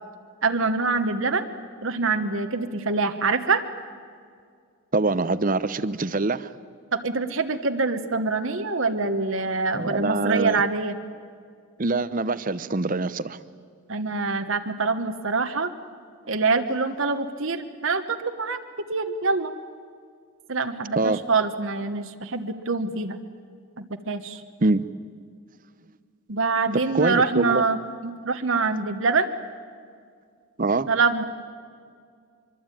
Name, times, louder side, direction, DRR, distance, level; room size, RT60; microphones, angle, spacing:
voice 1, 0.4-1.5 1.8-3.6 6.9-11.0 13.9-15.7 16.3-18.6 18.9-19.5 20.5-23.2 23.8-24.4 26.3-29.3 30.9-31.2, right 4 dB, 60° right, 7 dB, 1.2 m, -25 dB
voice 2, 4.9-6.5 9.7-10.6 11.8-13.4 21.0-21.2 24.6-24.8 26.9-27.6 30.6-30.9, right 3 dB, 40° right, 15 dB, 0.7 m, -24 dB
24.0 x 24.0 x 9.1 m, 2.1 s
head